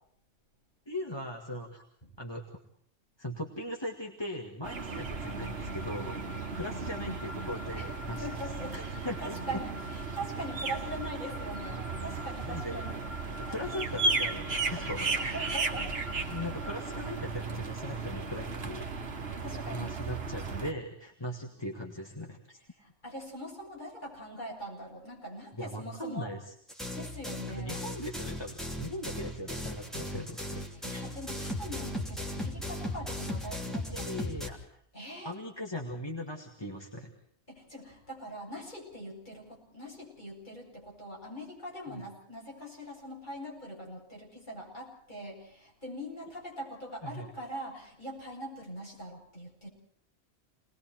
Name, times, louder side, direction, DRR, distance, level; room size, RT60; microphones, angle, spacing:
voice 1, 0.9-1.8 2.2-2.5 3.2-8.3 8.7-9.6 12.4-12.8 13.5-15.6 16.3-18.9 19.6-22.6 25.5-26.5 27.5-30.6 33.9-34.6 35.2-37.1 41.9-42.0 47.0-47.3, left 1 dB, 25° left, 1 dB, 2.2 m, -39 dB
sound 1, 4.6-20.7, right 3 dB, 70° right, 1.6 m, -35 dB
voice 2, 6.8-7.2 7.7-7.9 8.2-8.7 9.2-9.7 10.1-13.0 15.1-15.9 19.4-20.0 22.8-26.3 26.9-27.8 30.8-34.1 34.9-35.3 37.5-49.7, equal, 45° left, -2 dB, 8.2 m, -42 dB
sound 2, 26.7-34.5, left 1 dB, ahead, 3.1 m, -37 dB
29.5 x 20.5 x 4.5 m, 0.63 s
omnidirectional pair, 1.1 m